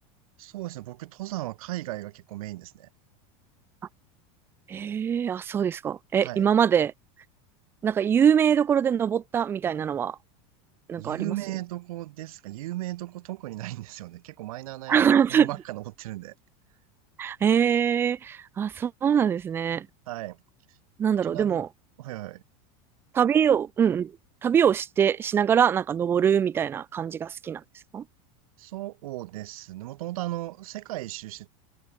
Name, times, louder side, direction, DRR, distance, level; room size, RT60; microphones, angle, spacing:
voice 1, 0.4-2.9 6.2-6.5 11.0-16.3 20.1-20.4 20.7-20.8 21.2-21.6 22.0-22.4 28.6-31.5, right 17 dB, 80° right, 1.7 m, -36 dB
voice 2, 4.7-6.9 7.8-10.2 10.9-11.4 14.9-15.5 17.2-19.9 21.0-21.7 23.1-24.1 24.4-27.6 27.9-28.0, right 8 dB, 15° right, 0.4 m, -23 dB
supercardioid pair, 165°, 18 cm